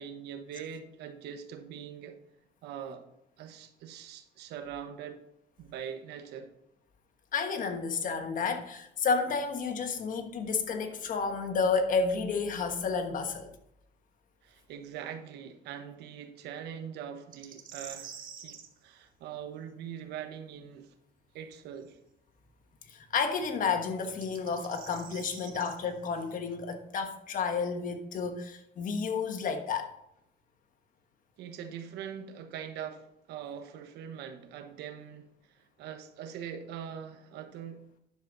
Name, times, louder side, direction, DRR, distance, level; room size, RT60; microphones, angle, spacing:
voice 1, 0.0-2.2 2.6-3.1 3.4-5.2 5.6-6.5 14.4-20.9 21.3-22.0 31.4-37.9, right 8 dB, 80° right, 1.0 m, -42 dB
voice 2, 7.3-13.5 22.9-29.9, left 5 dB, 50° left, 1.3 m, -31 dB
sound 1, 17.3-18.7 21.8-21.9 24.0-25.8, right 8 dB, 55° right, 1.4 m, -46 dB
10.5 x 6.8 x 3.9 m
cardioid pair, 110°, 17 cm